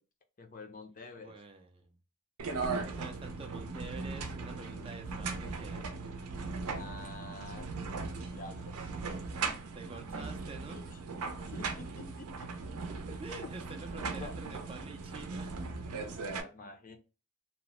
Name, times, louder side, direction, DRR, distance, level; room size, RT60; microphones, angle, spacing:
voice 1, 0.4-1.4 6.7-7.7 8.3-8.9 10.9-11.0 11.5-12.5 13.4-13.8 14.2-14.3 16.3-17.0, left 3 dB, 40° left, 0.5 m, -48 dB
voice 2, 1.2-1.9 2.7-5.9 9.7-10.8 12.9-15.5, right 3 dB, 25° right, 0.3 m, -47 dB
sound 1, 2.4-16.4, right 4 dB, 90° right, 0.5 m, -38 dB
2.8 x 2.0 x 3.0 m
head